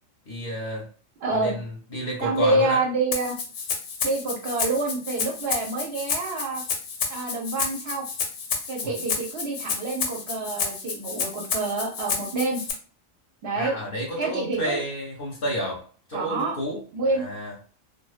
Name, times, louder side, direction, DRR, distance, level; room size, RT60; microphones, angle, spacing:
voice 1, 0.3-0.9 1.3-2.8 8.8-8.9 13.6-16.8 17.1-17.5, equal, 55° left, 0.7 m, -30 dB
voice 2, 1.2-1.6 2.2-3.4 4.0-6.6 7.1-8.1 8.7-12.6 13.4-13.8 14.2-14.8 16.1-16.6 16.9-17.2, right 3 dB, 65° right, 0.7 m, -27 dB
Rattle (instrument), 3.1-12.7, left 5 dB, 85° left, 1.0 m, -30 dB
2.5 x 2.1 x 2.3 m
omnidirectional pair, 1.3 m